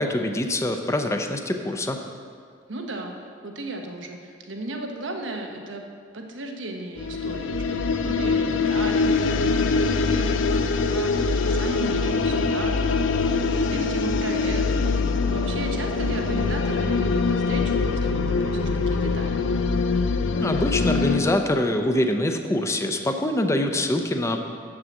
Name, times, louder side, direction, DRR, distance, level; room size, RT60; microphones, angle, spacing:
voice 1, 0.0-2.0 20.3-24.4, left 1 dB, 15° left, 5 dB, 0.6 m, -24 dB
voice 2, 2.7-3.1 3.4-5.8 6.1-13.0 13.3-14.6 15.3-19.5, right 2 dB, 90° right, 3 dB, 1.0 m, -35 dB
sound 1, 7.0-21.2, left 4 dB, 90° left, 0.5 m, -23 dB
7.4 x 6.3 x 7.2 m, 2.1 s
head